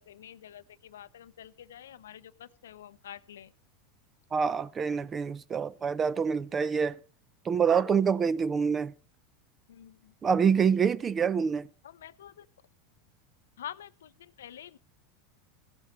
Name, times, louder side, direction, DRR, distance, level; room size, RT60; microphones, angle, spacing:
voice 1, 0.0-3.5 9.7-10.1 11.8-12.5 13.6-14.8, left 10 dB, 80° left, 0.5 m, -47 dB
voice 2, 4.3-7.0 7.4-8.9 10.2-11.7, right 6 dB, 30° right, 0.6 m, -26 dB
16.0 x 11.5 x 3.1 m
hypercardioid pair, 95°, 0 cm